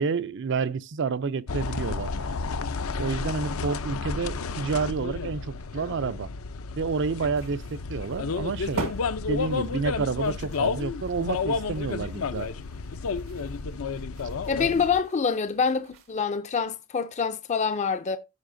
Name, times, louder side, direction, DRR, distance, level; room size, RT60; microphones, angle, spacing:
voice 1, 0.0-2.1 3.0-6.3 6.8-8.8 9.3-12.5, right 5 dB, 55° right, 0.5 m, -29 dB
sound 1, 1.5-15.0, left 4 dB, 75° left, 0.6 m, -31 dB
sound 2, 7.4-16.3, right 3 dB, 85° right, 1.8 m, -43 dB
voice 2, 14.5-18.2, left 5 dB, 35° left, 0.4 m, -26 dB
14.5 x 5.6 x 2.6 m
head